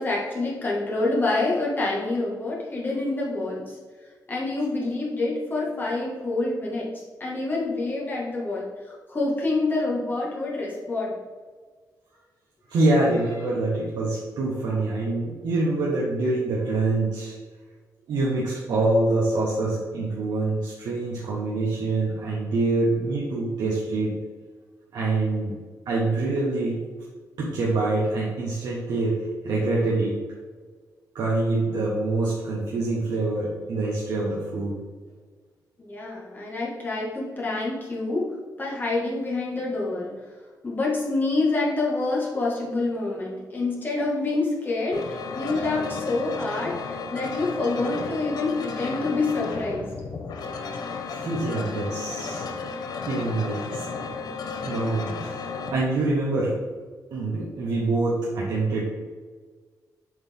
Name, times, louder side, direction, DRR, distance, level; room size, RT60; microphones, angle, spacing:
voice 1, 0.0-3.7 4.3-6.9 7.2-11.1 35.9-38.3 38.6-40.1 40.6-49.9, left 2 dB, 30° left, -4 dB, 1.7 m, -27 dB
voice 2, 12.7-17.3 18.1-24.2 24.9-25.5 25.8-26.8 27.4-30.2 31.1-34.8 51.1-52.4 53.1-53.9 54.6-56.6 57.1-58.8, right 2 dB, 85° right, -5 dB, 1.3 m, -25 dB
sound 1, 44.9-55.7, left 4 dB, 75° left, 0.8 m, -33 dB
7.7 x 4.1 x 3.6 m, 1.5 s
cardioid pair, 120°, 7 cm